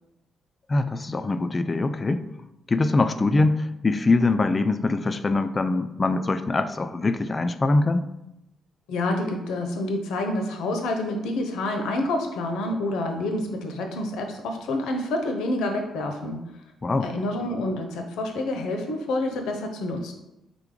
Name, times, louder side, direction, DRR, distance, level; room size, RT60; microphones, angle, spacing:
voice 1, 0.7-2.2 2.7-8.1 16.8-17.1, left 3 dB, 25° left, 10 dB, 0.3 m, -23 dB
voice 2, 8.9-16.4 17.0-20.1, left 1 dB, 85° left, 4 dB, 0.7 m, -28 dB
3.6 x 3.5 x 3.7 m, 0.91 s
cardioid pair, 90°, 0 cm